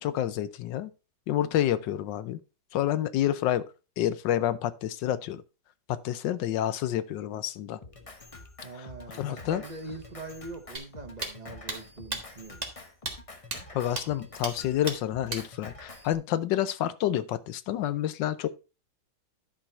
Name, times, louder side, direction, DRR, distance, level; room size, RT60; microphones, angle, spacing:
voice 1, 0.0-0.9 1.3-2.4 2.7-3.6 4.0-5.4 5.9-7.8 8.7-8.9 9.1-9.6 13.7-18.5, left 12 dB, 70° left, 1.2 m, -29 dB
Drum kit, 7.8-16.1, left 2 dB, 30° left, 0.6 m, -47 dB
voice 2, 8.6-12.6, right 2 dB, 35° right, 0.6 m, -42 dB
sound 1, 10.7-10.8 11.2-11.3 11.7-11.8 12.1-12.2 12.6-12.7 13.0-13.1 13.5-13.6 14.0-14.1 14.4-14.5 14.9-15.0 15.3-15.4, right 3 dB, 20° right, 1.4 m, -33 dB
11.5 x 4.6 x 4.4 m
omnidirectional pair, 2.2 m